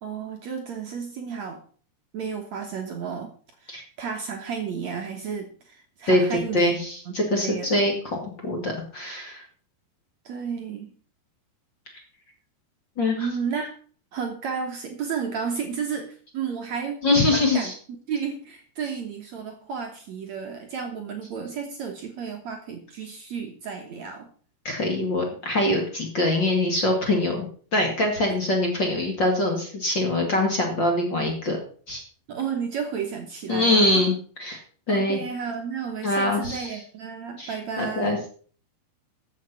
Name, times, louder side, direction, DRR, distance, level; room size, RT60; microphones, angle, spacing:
voice 1, 0.0-1.6 2.1-3.3 3.6-6.7 7.1-7.9 10.3-10.9 13.0-13.7 14.1-17.0 17.3-17.7 18.1-24.3 32.3-33.9 34.9-38.2, right 6 dB, 65° right, 3 dB, 1.8 m, -32 dB
voice 2, 6.1-7.9 8.2-9.4 13.0-13.3 17.0-17.7 24.6-31.6 31.9-32.0 33.5-34.1 34.4-34.6 34.9-35.2 36.0-36.7 37.4-38.3, left 1 dB, 35° left, 2 dB, 2.2 m, -23 dB
14.0 x 7.3 x 5.7 m, 0.44 s
omnidirectional pair, 5.1 m